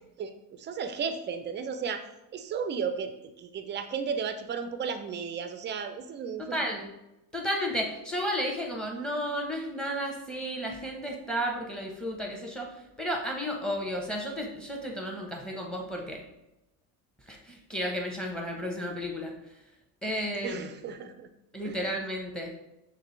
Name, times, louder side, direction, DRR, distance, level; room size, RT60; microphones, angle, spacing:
voice 1, 0.2-2.0 2.3-6.6 20.4-21.3 21.6-21.8, right 6 dB, 25° right, 8 dB, 0.3 m, -34 dB
voice 2, 6.5-6.9 7.3-12.7 13.0-16.3 17.3-19.3 20.0-20.7 21.5-22.5, equal, ahead, 1 dB, 0.9 m, -33 dB
6.4 x 2.2 x 3.2 m, 0.91 s
hypercardioid pair, 85°, 47 cm